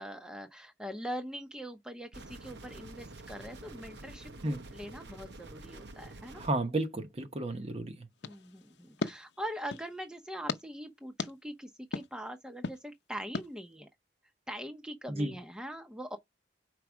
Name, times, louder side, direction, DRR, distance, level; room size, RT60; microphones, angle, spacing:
voice 1, 0.0-6.4 8.2-13.9 14.5-16.2, equal, 5° right, 0.6 m, -42 dB
sound 1, 2.1-6.5, right 2 dB, 65° right, 0.8 m, -48 dB
voice 2, 6.4-8.0 15.1-15.3, right 2 dB, 35° right, 0.9 m, -32 dB
sound 2, 8.2-9.9 10.5-10.6 11.2-11.3 11.9-12.1 12.6-12.8 13.3-13.5, left 3 dB, 65° left, 0.7 m, -37 dB
4.8 x 4.6 x 6.1 m
head